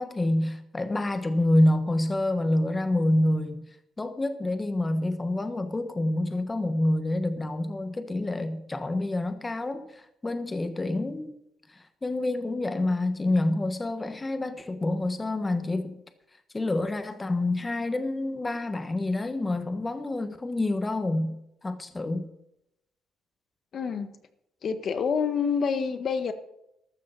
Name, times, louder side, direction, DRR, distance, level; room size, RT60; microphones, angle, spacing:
voice 1, 0.0-3.6 4.0-9.8 10.2-11.3 12.0-16.0 16.5-21.4 21.6-22.3, left 1 dB, 20° left, 9 dB, 1.4 m, -27 dB
voice 2, 23.7-24.1 24.6-26.3, left 6 dB, 50° left, 9 dB, 1.5 m, -27 dB
14.0 x 13.0 x 4.2 m, 0.82 s
cardioid pair, 125°, 0 cm